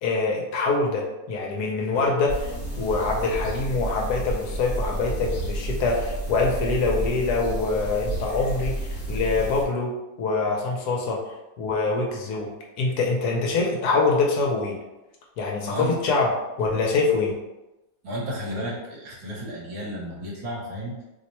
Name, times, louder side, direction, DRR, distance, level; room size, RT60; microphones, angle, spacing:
voice 1, 0.0-9.9 10.2-11.2 11.6-12.5 12.8-14.8 15.4-16.3 16.6-17.3, left 3 dB, 70° left, -1 dB, 1.1 m, -24 dB
sound 1, 2.3-9.6, right 1 dB, 45° left, 0.9 m, -31 dB
voice 2, 15.6-15.9 18.0-21.0, equal, 60° right, -4 dB, 1.3 m, -32 dB
3.0 x 2.1 x 4.1 m, 1.0 s
omnidirectional pair, 1.8 m